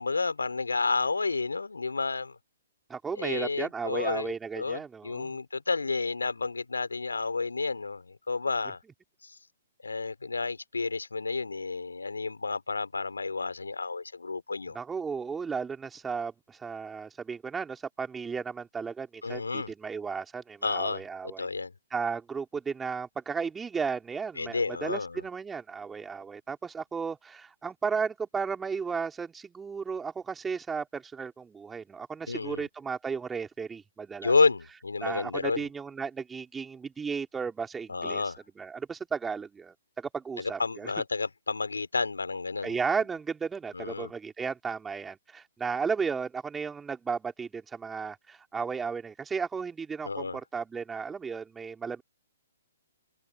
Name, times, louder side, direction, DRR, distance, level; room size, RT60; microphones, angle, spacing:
voice 1, 0.0-2.4 3.2-8.8 9.8-14.8 19.2-19.7 20.6-21.7 24.4-25.2 32.3-32.7 34.2-35.7 37.9-38.4 40.4-42.8 43.7-44.1 50.0-50.4, left 4 dB, 85° left, 4.0 m, -30 dB
voice 2, 2.9-5.4 14.7-21.5 21.9-34.3 35.0-38.2 38.6-40.9 42.6-52.0, right 5 dB, 10° right, 3.8 m, -34 dB
figure-of-eight pair, 125°, 0 cm